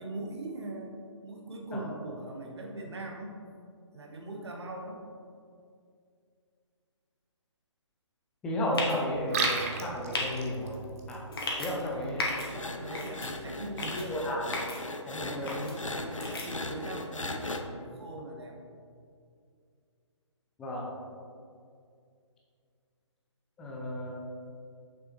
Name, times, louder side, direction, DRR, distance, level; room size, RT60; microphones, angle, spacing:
voice 1, 0.0-3.4 3.9-5.0 11.7-14.3 15.3-18.6, right 2 dB, 60° right, 0 dB, 1.2 m, -41 dB
voice 2, 8.4-10.8 11.1-11.2 11.6-12.3 13.9-14.4 15.1-15.6 20.6-20.9 23.6-24.1, left 1 dB, 5° left, -3 dB, 0.3 m, -33 dB
sound 1, 8.7-9.0 9.4-9.6 10.1-10.2 11.3-11.7 12.2-12.5 12.9-13.3 13.8-14.0 14.5-14.8 15.5-15.7 16.2-16.5, left 2 dB, 50° left, 1.4 m, -33 dB
Liquid, 9.1-14.1, right 4 dB, 30° right, 0.6 m, -38 dB
sound 2, 12.5-17.6, left 2 dB, 90° left, 0.6 m, -38 dB
6.6 x 6.2 x 3.0 m, 2.3 s
figure-of-eight pair, 140°, 16 cm